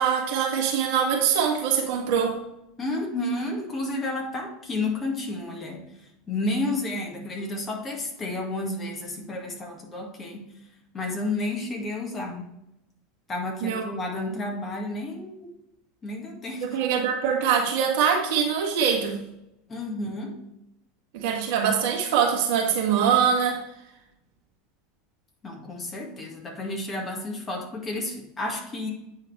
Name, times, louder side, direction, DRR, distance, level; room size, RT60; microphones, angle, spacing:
voice 1, 0.0-2.4 13.6-13.8 16.6-19.2 21.1-23.6, right 7 dB, 60° right, 1 dB, 1.5 m, -23 dB
voice 2, 2.8-5.8 6.3-10.5 10.9-12.4 13.3-15.5 16.0-16.8 19.7-20.4 25.4-28.9, left 2 dB, 25° left, 1 dB, 2.0 m, -31 dB
8.8 x 3.8 x 4.7 m, 0.84 s
figure-of-eight pair, 80°, 0 cm